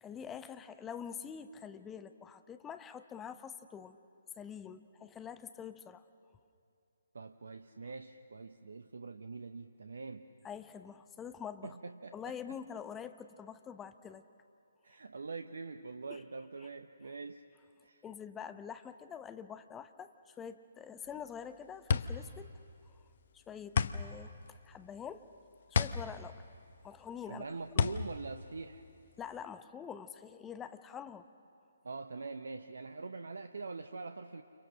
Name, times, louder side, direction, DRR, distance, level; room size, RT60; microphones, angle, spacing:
voice 1, 0.0-4.0 4.4-6.0 10.4-11.8 12.1-14.2 16.1-16.2 18.0-22.5 23.3-25.3 25.7-26.4 26.8-27.4 27.8-27.9 29.2-31.3, left 7 dB, 10° left, 10 dB, 0.9 m, -46 dB
voice 2, 7.1-10.3 11.6-12.6 14.8-17.4 17.8-18.0 27.3-28.8 31.8-34.4, right 4 dB, 65° right, 8 dB, 0.9 m, -44 dB
sound 1, 21.1-29.4, left 6 dB, 50° left, 0.9 m, -34 dB
29.5 x 29.0 x 6.4 m, 2.7 s
figure-of-eight pair, 135°, 0 cm